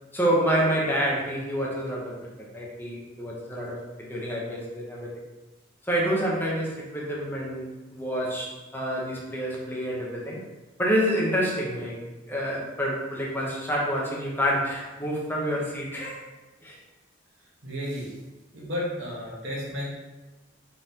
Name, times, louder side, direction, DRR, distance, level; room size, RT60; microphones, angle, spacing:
voice 1, 0.1-2.3 2.5-5.1 5.8-10.4 10.8-16.2 16.6-16.8, equal, 10° left, -4 dB, 0.8 m, -28 dB
voice 2, 17.4-18.2 18.5-19.9, left 1 dB, 70° right, -4 dB, 1.2 m, -33 dB
3.8 x 3.5 x 2.8 m, 1.1 s
head